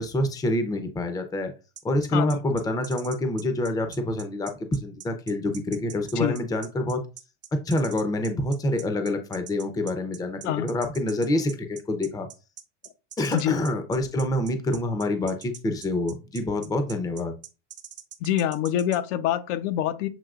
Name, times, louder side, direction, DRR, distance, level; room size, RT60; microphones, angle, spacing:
voice 1, 0.0-1.5 1.8-7.0 7.5-12.3 13.2-17.4, left 1 dB, 10° left, 0.6 m, -27 dB
sound 1, 1.8-19.0, right 10 dB, 30° right, 0.6 m, -44 dB
voice 2, 2.1-2.6 6.2-6.4 10.4-10.7 13.3-13.6 18.2-20.1, left 11 dB, 75° left, 0.8 m, -25 dB
7.4 x 2.8 x 2.4 m
supercardioid pair, 135°, 36 cm